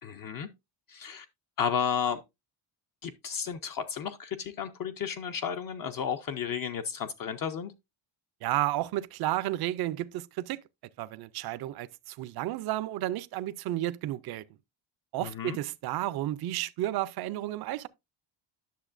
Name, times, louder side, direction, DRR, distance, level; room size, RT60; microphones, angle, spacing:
voice 1, 0.0-0.5 0.9-1.3 1.6-2.2 3.0-7.7 15.2-15.6, left 7 dB, 45° left, 0.5 m, -33 dB
voice 2, 8.4-10.6 11.0-14.5 15.1-17.9, right 15 dB, 50° right, 0.5 m, -32 dB
10.0 x 6.6 x 2.5 m
cardioid pair, 170°, 48 cm